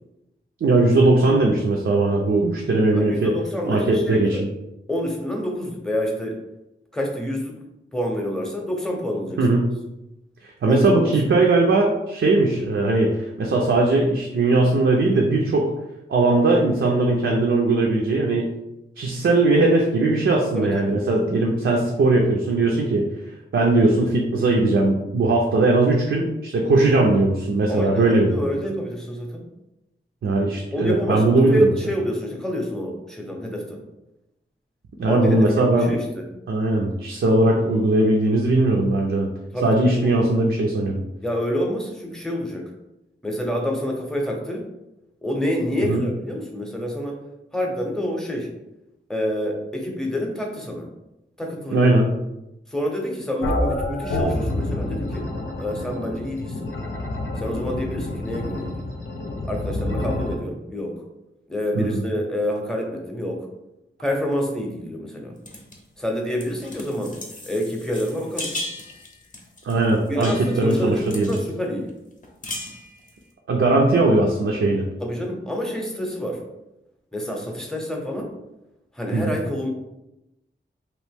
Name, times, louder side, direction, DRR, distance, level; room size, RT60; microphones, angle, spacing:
voice 1, 0.6-3.3 3.6-4.5 9.4-9.7 10.4-15.7 16.1-18.5 19.0-23.1 23.5-28.4 30.2-31.7 35.0-35.9 36.5-39.3 39.6-41.0 45.9-46.0 51.7-52.1 61.7-62.0 69.6-71.3 73.5-74.8 79.1-79.4, right 2 dB, 75° right, -1 dB, 0.5 m, -19 dB
voice 2, 2.9-4.4 4.9-6.4 6.9-7.5 7.9-9.4 10.7-11.2 20.5-21.0 27.7-29.4 30.7-33.8 35.1-36.3 39.5-40.1 41.2-42.7 43.2-44.7 45.2-47.2 47.5-48.5 49.1-50.9 51.4-51.9 52.7-55.2 55.6-56.7 57.4-58.8 59.5-61.0 61.5-63.5 64.0-65.4 66.0-67.2 67.5-68.6 70.1-71.9 75.0-76.4 77.1-78.3 78.9-79.7, equal, 5° left, 0 dB, 0.7 m, -27 dB
sound 1, 53.4-60.3, left 1 dB, 85° left, 0.7 m, -28 dB
sound 2, 65.5-65.8 66.3-71.5 71.9-72.0 72.2-73.2, left 1 dB, 40° left, 0.6 m, -36 dB
3.0 x 2.5 x 3.4 m, 0.92 s
wide cardioid pair, 95°, 20 cm